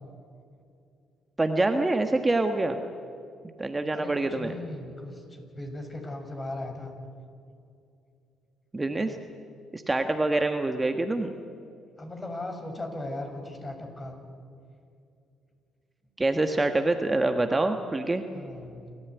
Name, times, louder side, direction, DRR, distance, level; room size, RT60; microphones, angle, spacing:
voice 1, 1.4-2.8 3.6-4.5 8.7-9.2 9.7-11.3 16.2-18.2, right 2 dB, 20° right, 6 dB, 1.5 m, -25 dB
voice 2, 3.9-6.9 12.0-14.2 18.3-18.9, left 1 dB, 25° left, 4 dB, 6.2 m, -38 dB
28.5 x 14.5 x 9.4 m, 2.4 s
supercardioid pair, 65°, 0 cm